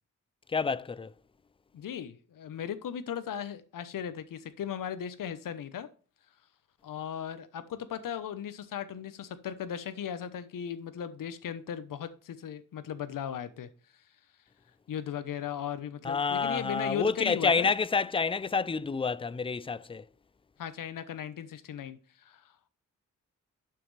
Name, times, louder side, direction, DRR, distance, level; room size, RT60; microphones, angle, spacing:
voice 1, 0.5-1.1 16.0-20.1, left 5 dB, 15° left, 0.4 m, -28 dB
voice 2, 1.7-5.9 6.8-13.7 14.9-17.7 20.6-22.4, left 9 dB, 90° left, 1.0 m, -37 dB
11.5 x 5.8 x 3.3 m
cardioid pair, 100°, 32 cm